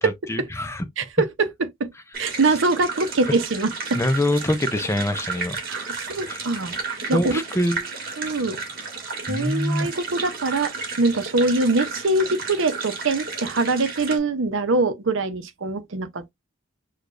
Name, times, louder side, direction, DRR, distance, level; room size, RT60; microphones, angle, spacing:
voice 1, 0.0-0.9 3.9-5.6 6.3-6.4 7.1-7.9 9.3-9.9, left 1 dB, 15° left, 0.4 m, -24 dB
voice 2, 1.0-1.5 1.8-1.9 2.2-4.0 5.7-7.4 8.2-8.6 9.3-10.7 11.0-16.3, right 3 dB, 70° right, 0.7 m, -23 dB
sound 1, 2.1-14.2, right 4 dB, 45° right, 1.7 m, -33 dB
6.4 x 2.3 x 2.5 m
head